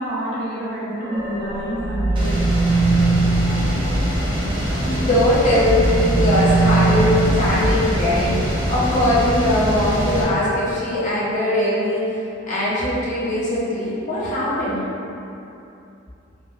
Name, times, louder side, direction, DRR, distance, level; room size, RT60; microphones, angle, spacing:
voice 1, 0.0-2.4, right 1 dB, 85° right, -10 dB, 1.0 m, -28 dB
sound 1, 1.0-4.9 5.3-8.6, right 3 dB, 70° left, 0.8 m, -22 dB
sound 2, 2.2-10.2, equal, 25° right, 0.5 m, -24 dB
voice 2, 4.8-12.2 12.5-14.8, left 1 dB, 40° left, -9 dB, 0.8 m, -20 dB
3.4 x 2.3 x 2.3 m, 2.8 s
head